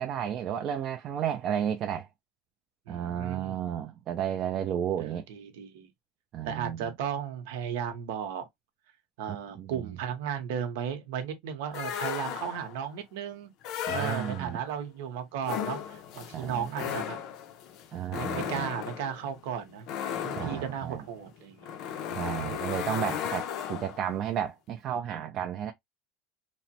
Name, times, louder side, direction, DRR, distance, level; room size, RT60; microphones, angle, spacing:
voice 1, 0.0-2.1 2.9-5.2 6.3-6.9 9.3-9.8 13.9-14.6 16.3-17.0 17.9-18.7 20.3-21.0 22.1-25.7, right 9 dB, 35° right, 0.3 m, -33 dB
voice 2, 2.9-3.6 5.0-5.9 6.4-8.5 9.2-13.5 13.9-17.2 18.1-19.9 20.2-21.7, right 8 dB, 80° right, 0.8 m, -35 dB
sound 1, 11.7-12.8 13.6-14.7 15.4-24.1, left 9 dB, 45° left, 0.4 m, -36 dB
3.0 x 2.0 x 2.8 m
cardioid pair, 165°, 0 cm